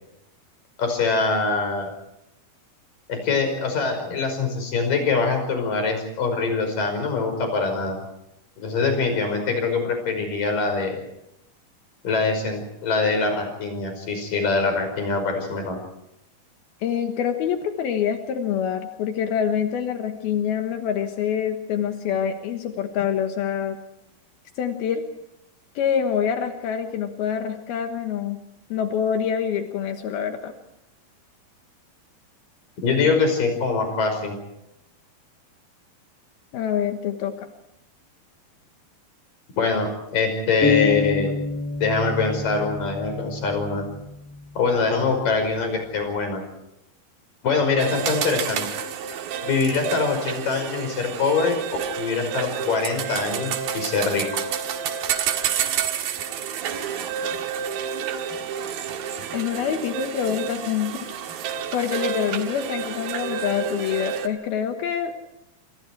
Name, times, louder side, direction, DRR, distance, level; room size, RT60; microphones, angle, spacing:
voice 1, 0.8-1.9 3.1-8.0 8.6-11.0 12.0-15.8 32.8-34.4 39.6-41.3 41.8-43.9 44.6-46.4 47.4-48.7 49.4-51.6 52.0-54.3, left 4 dB, 60° left, 5 dB, 7.0 m, -23 dB
voice 2, 16.8-23.8 24.6-25.0 25.8-28.4 28.7-30.5 36.5-37.5 59.3-61.0 61.7-65.1, left 8 dB, 75° left, 6 dB, 3.2 m, -26 dB
sound 1, 40.6-44.4, left 4 dB, 5° left, 4.9 m, -27 dB
sound 2, 47.8-64.3, right 8 dB, 75° right, 3.4 m, -29 dB
27.0 x 27.0 x 4.7 m, 0.84 s
omnidirectional pair, 4.4 m